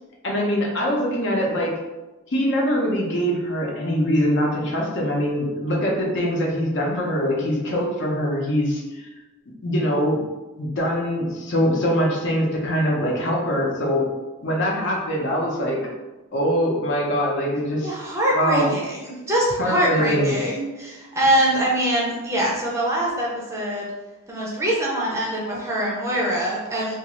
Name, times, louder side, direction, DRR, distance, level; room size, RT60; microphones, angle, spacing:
voice 1, 0.2-1.7 2.3-9.1 9.6-10.2 10.6-14.1 14.4-15.8 16.3-18.0 18.3-18.7 19.6-20.4, equal, 55° left, -2 dB, 0.6 m, -23 dB
voice 2, 17.8-23.9 24.3-27.0, right 1 dB, 15° right, -5 dB, 0.5 m, -23 dB
2.5 x 2.4 x 3.0 m, 1.1 s
head